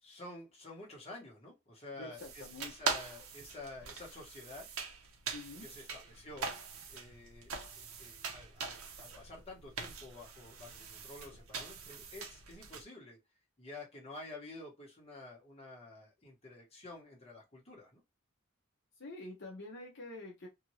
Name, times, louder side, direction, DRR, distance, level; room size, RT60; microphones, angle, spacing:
voice 1, 0.0-4.7 5.6-6.5 6.9-13.2 13.6-18.0, left 2 dB, 30° left, 1.1 m, -50 dB
voice 2, 2.0-2.7 5.3-5.7 19.0-20.5, left 2 dB, 55° left, 0.7 m, -47 dB
sound 1, 2.2-12.8, right 5 dB, 80° right, 0.7 m, -43 dB
2.8 x 2.6 x 3.0 m
head